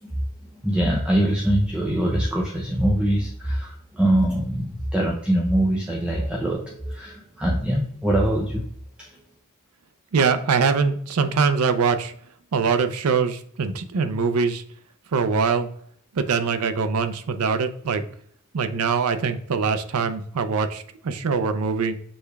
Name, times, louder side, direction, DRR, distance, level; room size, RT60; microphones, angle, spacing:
voice 1, 0.6-8.6 9.0-9.1, right 1 dB, 5° right, -3 dB, 0.5 m, -23 dB
voice 2, 10.1-12.1 12.5-14.6 15.1-15.7 16.1-18.0 18.5-22.0, right 5 dB, 80° right, 10 dB, 0.5 m, -23 dB
6.3 x 3.3 x 2.3 m, 0.65 s
head